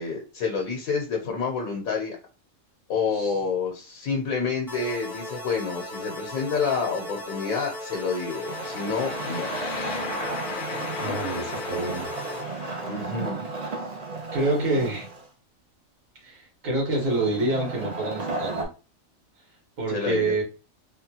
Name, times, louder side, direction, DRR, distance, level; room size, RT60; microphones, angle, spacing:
voice 1, 0.0-2.2 2.9-9.5 12.9-13.4 19.9-20.4, left 5 dB, 85° left, 0 dB, 1.2 m, -28 dB
sound 1, 4.7-12.4, left 1 dB, ahead, 0.8 m, -37 dB
sound 2, 7.9-13.3, left 4 dB, 60° left, 0.5 m, -37 dB
Wood, 8.5-15.3 16.9-18.6, right 3 dB, 40° right, 0.6 m, -34 dB
voice 2, 10.9-12.1 14.3-15.1 16.2-18.7 19.8-20.4, right 2 dB, 75° right, -1 dB, 1.8 m, -27 dB
3.6 x 2.3 x 2.8 m, 0.32 s
omnidirectional pair, 1.4 m